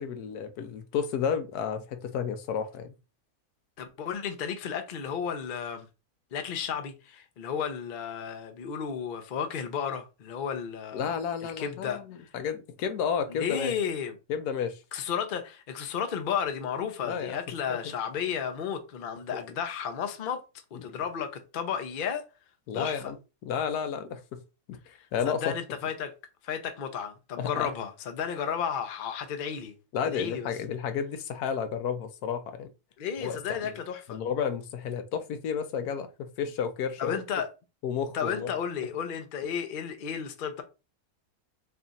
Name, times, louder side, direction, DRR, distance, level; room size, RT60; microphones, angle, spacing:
voice 1, 0.0-2.9 10.9-13.7 14.3-14.8 17.0-17.4 17.7-17.8 20.7-21.0 22.7-23.2 23.4-24.4 24.7-24.8 25.1-25.5 27.4-27.7 29.9-32.7 33.2-33.4 33.6-33.7 34.1-37.2 37.8-38.5, left 7 dB, 85° left, 1.2 m, -31 dB
voice 2, 3.8-5.9 6.3-11.1 11.4-12.0 13.3-14.1 14.9-20.4 20.7-22.2 22.7-23.1 25.2-26.1 26.4-29.7 30.0-30.5 33.0-34.2 37.0-37.5 38.1-40.6, left 7 dB, 55° left, 0.6 m, -33 dB
3.4 x 2.4 x 3.9 m
omnidirectional pair, 1.6 m